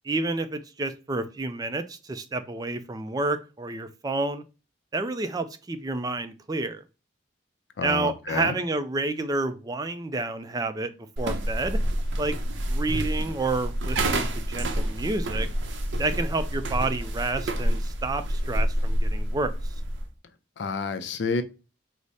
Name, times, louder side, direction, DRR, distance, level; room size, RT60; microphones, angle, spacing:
voice 1, 0.0-4.4 4.9-6.8 7.8-10.9 11.2-11.8 12.2-12.4 12.7-15.5 16.0-19.5, right 2 dB, 20° right, 0.3 m, -29 dB
voice 2, 7.8-8.6 20.6-21.4, left 4 dB, 70° left, 0.5 m, -29 dB
sound 1, 11.2-20.1, right 1 dB, 85° right, 0.7 m, -28 dB
4.8 x 2.0 x 4.0 m
head